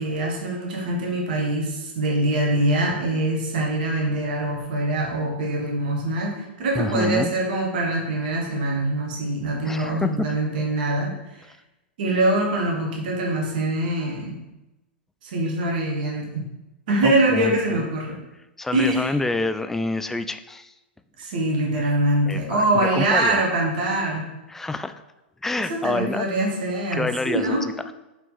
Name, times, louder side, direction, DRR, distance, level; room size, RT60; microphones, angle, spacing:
voice 1, 0.0-11.4 12.0-14.4 15.2-16.4 16.9-18.2 18.7-19.1 21.2-24.2 25.6-27.7, right 1 dB, 50° right, 0 dB, 1.4 m, -24 dB
voice 2, 6.8-7.3 9.7-10.3 17.0-17.8 18.6-20.7 22.3-23.4 24.5-24.9 25.4-26.2 26.9-27.6, left 2 dB, 5° left, 10 dB, 0.3 m, -27 dB
6.0 x 4.4 x 4.1 m, 1.0 s
figure-of-eight pair, 100°, 6 cm